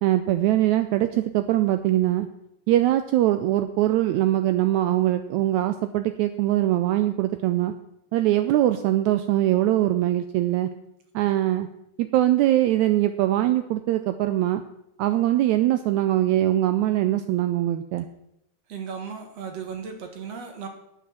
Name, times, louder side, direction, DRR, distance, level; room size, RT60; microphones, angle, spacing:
voice 1, 0.0-2.3 2.7-7.7 8.1-10.7 11.1-11.7 12.0-14.6 15.0-18.1, right 14 dB, 80° right, 10 dB, 1.7 m, -22 dB
voice 2, 18.7-20.7, right 6 dB, 60° right, 5 dB, 2.3 m, -35 dB
9.0 x 8.4 x 7.3 m, 0.81 s
omnidirectional pair, 3.8 m